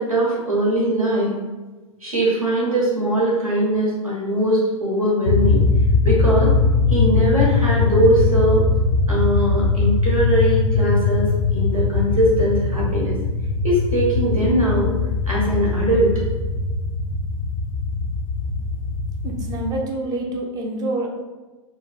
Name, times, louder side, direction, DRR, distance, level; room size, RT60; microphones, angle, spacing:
voice 1, 0.0-1.3 2.0-5.6 6.0-6.5 6.9-8.6 9.1-13.1 13.6-14.9 15.3-16.1, right 1 dB, 90° right, -5 dB, 1.1 m, -20 dB
sound 1, 5.3-19.7, left 4 dB, 75° left, 0.5 m, -20 dB
voice 2, 19.2-21.1, right 2 dB, 20° right, 0 dB, 0.5 m, -26 dB
3.0 x 2.0 x 3.1 m, 1.2 s
figure-of-eight pair, 100°, 17 cm